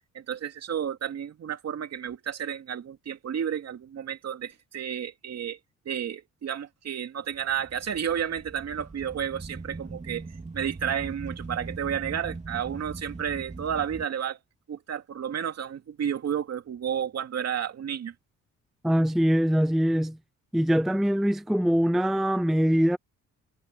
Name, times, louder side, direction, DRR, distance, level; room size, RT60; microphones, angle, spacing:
voice 1, 0.1-5.6 5.9-10.2 10.5-14.4 14.7-18.1, right 8 dB, 60° right, 2.5 m, -31 dB
sound 1, 7.3-14.1, right 3 dB, 25° right, 3.8 m, -40 dB
voice 2, 18.8-20.2 20.5-23.0, equal, ahead, 0.5 m, -23 dB
cardioid pair, 90°, 30 cm